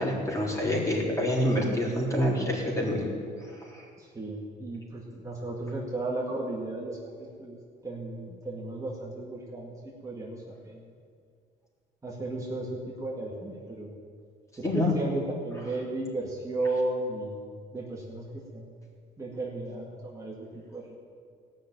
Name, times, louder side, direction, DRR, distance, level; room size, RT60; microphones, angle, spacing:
voice 1, 0.0-3.1 3.4-3.9 14.6-14.9, left 1 dB, 20° left, -3 dB, 3.8 m, -27 dB
voice 2, 4.0-10.9 12.0-13.9 14.6-17.4 17.7-18.8 19.2-20.9, right 2 dB, 20° right, -4 dB, 2.1 m, -35 dB
17.0 x 6.5 x 9.1 m, 2.1 s
cardioid pair, 110°, 17 cm